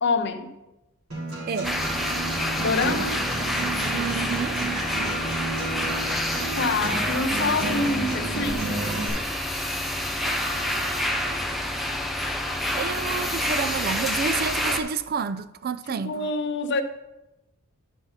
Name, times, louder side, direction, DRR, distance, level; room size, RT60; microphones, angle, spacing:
voice 1, 0.0-0.6 2.6-3.2 6.6-9.0 16.0-16.8, left 3 dB, 50° left, 0.6 m, -26 dB
Acoustic guitar, 1.1-9.1, right 3 dB, 80° right, 3.5 m, -32 dB
voice 2, 1.5-1.8 3.9-4.6 10.2-11.4 12.7-16.3, right 6 dB, 45° right, 0.3 m, -30 dB
sound 1, 1.6-14.8, left 1 dB, ahead, 0.6 m, -28 dB
10.5 x 5.5 x 4.0 m
head